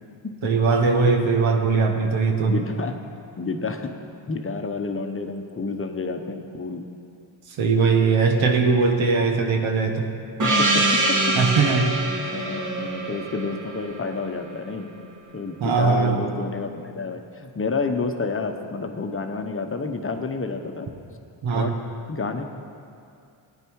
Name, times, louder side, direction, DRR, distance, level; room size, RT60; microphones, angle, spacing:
voice 1, 0.4-2.6 7.5-10.1 11.3-11.9 15.6-16.2 21.4-21.7, right 4 dB, 90° right, 3 dB, 1.3 m, -20 dB
voice 2, 2.5-3.0 3.4-4.0 4.3-6.8 10.4-11.3 12.3-14.9 15.3-20.9 21.5-21.7 22.1-22.4, left 4 dB, 30° left, 5 dB, 0.9 m, -29 dB
Gong, 10.4-14.7, right 2 dB, 40° right, 1.4 m, -24 dB
15.5 x 9.9 x 4.7 m, 2.5 s
cardioid pair, 100°, 46 cm